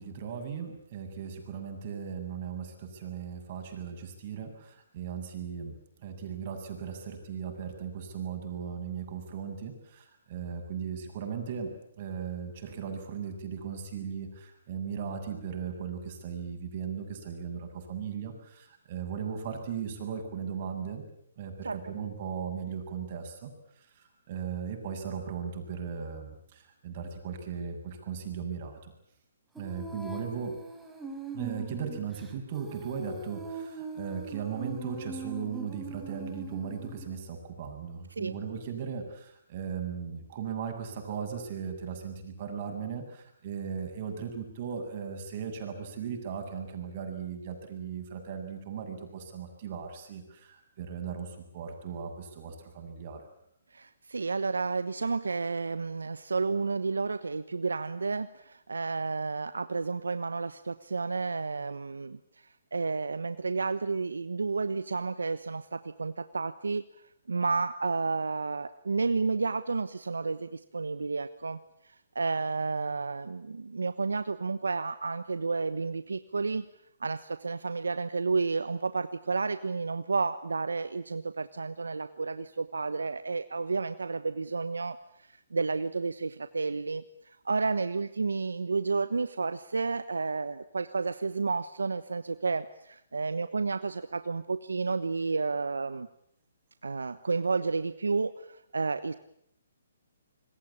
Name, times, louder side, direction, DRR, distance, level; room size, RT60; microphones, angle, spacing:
voice 1, 0.0-5.8 6.0-21.0 21.4-23.5 23.8-28.9 29.6-30.6 31.3-53.2, right 7 dB, 45° right, 5 dB, 7.8 m, -37 dB
Female singing, 29.6-37.2, right 3 dB, 5° right, 4.2 m, -41 dB
voice 2, 53.7-62.2 62.7-66.8 67.3-71.6 71.8-76.6 77.0-96.1 96.8-99.1, right 4 dB, 85° right, 12 dB, 1.1 m, -31 dB
26.5 x 22.0 x 8.8 m, 0.72 s
hypercardioid pair, 140°, 0 cm